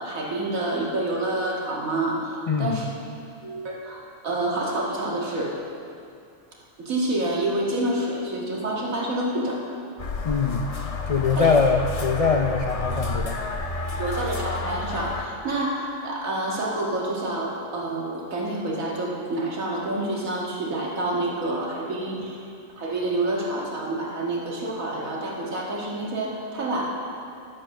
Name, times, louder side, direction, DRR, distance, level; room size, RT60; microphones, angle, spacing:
voice 1, 0.0-2.9 3.4-5.6 6.8-9.6 11.3-11.5 14.0-22.4 22.8-26.8, right 2 dB, 85° right, -3 dB, 2.2 m, -28 dB
voice 2, 2.5-2.8 10.2-10.7 11.1-13.4, left 5 dB, 65° left, 3 dB, 0.3 m, -22 dB
sound 1, 10.0-15.3, left 3 dB, 35° left, 0.7 m, -30 dB
11.0 x 7.5 x 6.5 m, 2.5 s
omnidirectional pair, 1.4 m